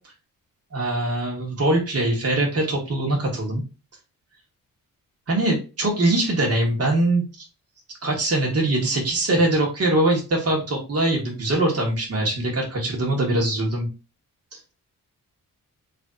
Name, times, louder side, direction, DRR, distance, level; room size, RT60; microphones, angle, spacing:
voice 1, 0.7-3.6 5.3-7.2 8.0-13.9, right 1 dB, 45° right, -1 dB, 1.3 m, -22 dB
3.4 x 2.7 x 3.5 m, 0.32 s
cardioid pair, 90°, 35 cm